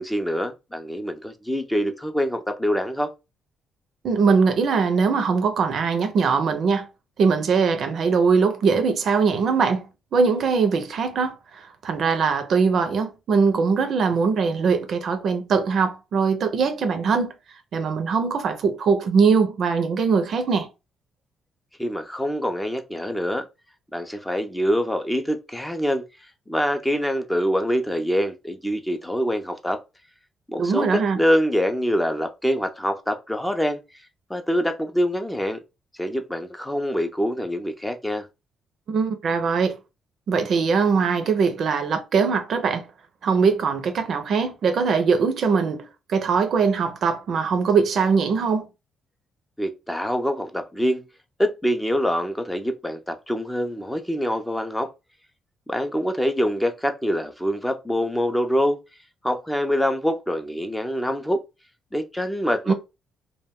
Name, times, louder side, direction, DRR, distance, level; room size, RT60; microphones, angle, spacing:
voice 1, 0.0-3.1 21.8-23.4 23.9-26.0 26.5-29.8 30.5-33.8 34.3-35.6 35.9-38.3 49.6-51.0 51.4-54.9 55.7-58.8 59.2-61.4 61.9-62.7, equal, 5° left, 0.4 m, -25 dB
voice 2, 4.0-6.9 7.2-9.8 10.1-17.3 17.7-20.7 30.6-31.2 38.9-39.8 40.3-42.9 43.2-48.7 62.7-62.8, right 5 dB, 60° right, 0.5 m, -21 dB
2.2 x 2.1 x 3.4 m
cardioid pair, 90°, 0 cm